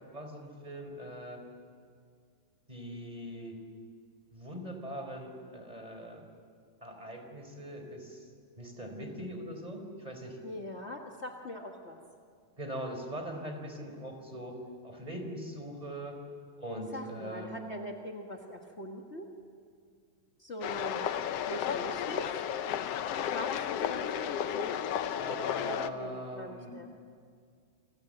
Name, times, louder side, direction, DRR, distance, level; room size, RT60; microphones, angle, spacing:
voice 1, 0.0-1.4 2.7-3.6 4.3-6.2 6.8-8.3 8.6-10.4 12.6-16.2 16.6-17.5 25.2-26.8, right 1 dB, 10° right, 4 dB, 4.0 m, -41 dB
voice 2, 10.4-12.0 16.9-19.3 20.4-21.0 21.5-22.3 23.3-24.8 25.9-26.9, left 1 dB, 50° left, 1 dB, 0.7 m, -42 dB
sound 1, 20.6-25.9, left 9 dB, 80° left, 1.4 m, -33 dB
29.5 x 26.0 x 7.8 m, 2.2 s
omnidirectional pair, 4.0 m